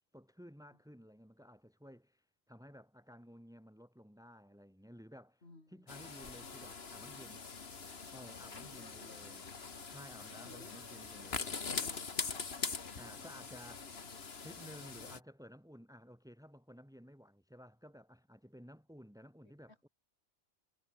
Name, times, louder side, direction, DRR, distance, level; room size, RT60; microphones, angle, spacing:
voice 1, 0.1-5.4 5.7-7.5 8.1-9.5 9.9-11.5 13.0-14.0 14.4-19.9, equal, 5° right, 5.1 m, -55 dB
voice 2, 5.4-5.9 8.5-9.3 10.3-12.3 19.4-19.9, left 2 dB, 85° left, 4.3 m, -59 dB
sound 1, 5.9-15.2, left 5 dB, 70° left, 1.9 m, -43 dB
omnidirectional pair, 1.1 m